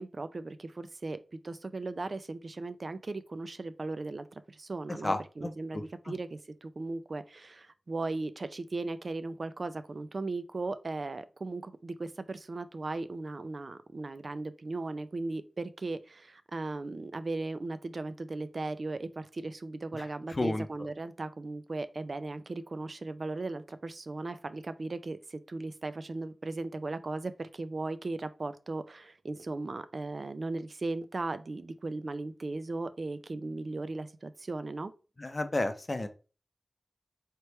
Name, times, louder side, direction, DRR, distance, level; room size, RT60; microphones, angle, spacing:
voice 1, 0.0-34.9, right 3 dB, 55° right, 0.4 m, -37 dB
voice 2, 5.0-5.8 19.9-20.7 35.2-36.1, left 2 dB, 35° left, 0.6 m, -32 dB
3.2 x 3.0 x 4.4 m
wide cardioid pair, 60°, 0 cm